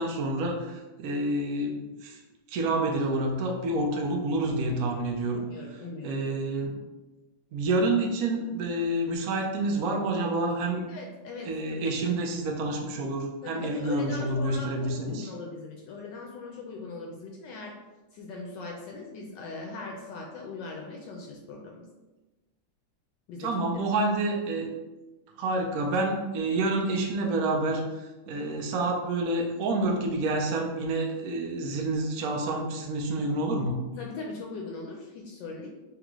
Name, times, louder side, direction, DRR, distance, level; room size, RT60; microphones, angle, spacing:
voice 1, 0.0-2.2 2.5-5.4 6.0-6.8 7.5-10.8 11.5-15.3 23.4-24.7 25.4-33.9, right 2 dB, 65° right, 1 dB, 0.8 m, -28 dB
voice 2, 5.3-6.3 10.7-11.9 13.4-17.8 18.1-21.9 23.3-23.5 34.0-35.7, left 3 dB, 75° left, 0 dB, 1.2 m, -40 dB
3.7 x 3.4 x 3.0 m, 1.1 s
omnidirectional pair, 2.1 m